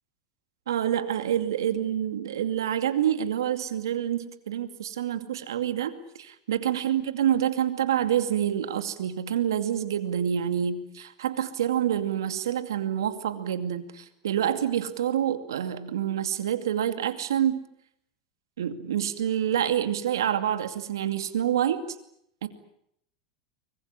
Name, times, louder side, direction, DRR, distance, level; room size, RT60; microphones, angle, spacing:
voice 1, 0.7-17.6 18.6-21.8 22.4-22.5, right 10 dB, 80° right, 10 dB, 2.4 m, -27 dB
24.5 x 21.5 x 9.8 m, 0.73 s
hypercardioid pair, 95°, 2 cm